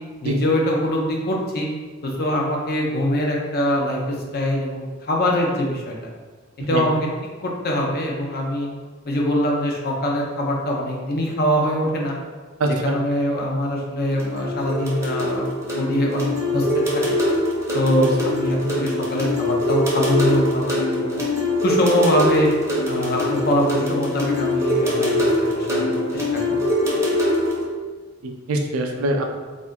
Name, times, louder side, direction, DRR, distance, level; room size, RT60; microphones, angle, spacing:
voice 1, 0.2-1.7 2.0-4.0 4.3-5.9 6.7-7.1 7.4-8.7 9.1-12.1 12.7-16.7 17.1-17.2 17.7-21.2 21.6-22.5 22.9-26.6, equal, 45° left, -1 dB, 0.6 m, -23 dB
voice 2, 12.6-13.0 18.0-18.1 28.2-29.2, right 1 dB, 75° right, 3 dB, 0.4 m, -23 dB
sound 1, 14.0-27.6, left 1 dB, 15° right, 0.6 m, -23 dB
2.5 x 2.5 x 3.5 m, 1.4 s
head